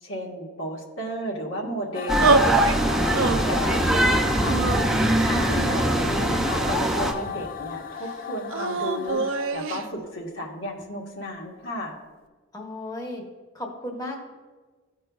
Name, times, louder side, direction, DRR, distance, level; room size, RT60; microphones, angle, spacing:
voice 1, 0.0-2.4 2.8-4.6 5.3-12.0, equal, 65° left, -2 dB, 1.4 m, -33 dB
sound 1, 1.9-9.5, left 8 dB, 45° left, 0.4 m, -35 dB
sound 2, 2.1-7.1, right 1 dB, ahead, 0.7 m, -22 dB
sound 3, 2.2-2.8 3.1-3.8 4.5-5.4 6.1-7.1 8.5-9.8, right 4 dB, 70° right, 0.4 m, -26 dB
voice 2, 5.1-5.5 12.5-13.2 13.5-14.2, left 1 dB, 20° left, 1 dB, 1.1 m, -34 dB
14.0 x 5.4 x 2.3 m, 1.4 s
head